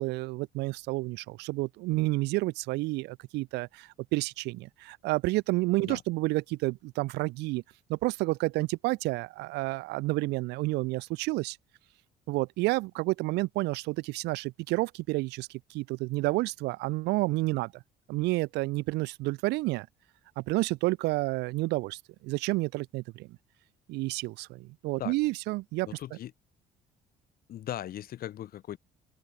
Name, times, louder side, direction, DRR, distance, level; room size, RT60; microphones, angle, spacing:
voice 1, 0.0-7.6 7.9-11.6 12.3-17.7 18.1-19.9 20.4-22.0 22.2-23.3 23.9-25.9, right 21 dB, 90° right, 0.7 m, -30 dB
voice 2, 25.9-26.3 27.5-28.8, left 12 dB, 60° left, 2.7 m, -38 dB
open air
cardioid pair, 110°, 17 cm